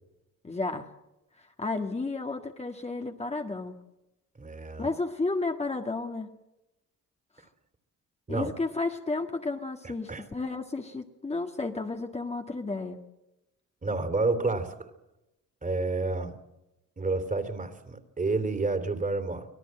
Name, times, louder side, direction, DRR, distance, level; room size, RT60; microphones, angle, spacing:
voice 1, 0.4-0.9 1.4-3.8 4.8-6.3 8.3-13.0, left 3 dB, 20° left, 3 dB, 1.8 m, -32 dB
voice 2, 4.4-4.9 8.3-8.5 9.8-10.2 13.8-14.7 15.6-16.4 17.0-19.5, right 3 dB, 25° right, 8 dB, 3.1 m, -29 dB
25.5 x 18.0 x 7.7 m, 0.95 s
cardioid pair, 90°, 30 cm